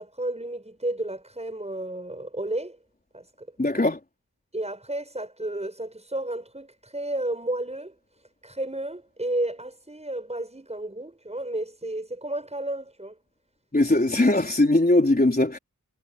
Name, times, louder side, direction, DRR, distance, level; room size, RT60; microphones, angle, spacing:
voice 1, 0.0-2.8 3.1-3.5 4.5-7.9 8.4-13.2, right 1 dB, 15° right, 7.5 m, -32 dB
voice 2, 3.6-4.0 13.7-15.6, left 2 dB, 25° left, 4.1 m, -20 dB
wide cardioid pair, 70°, 37 cm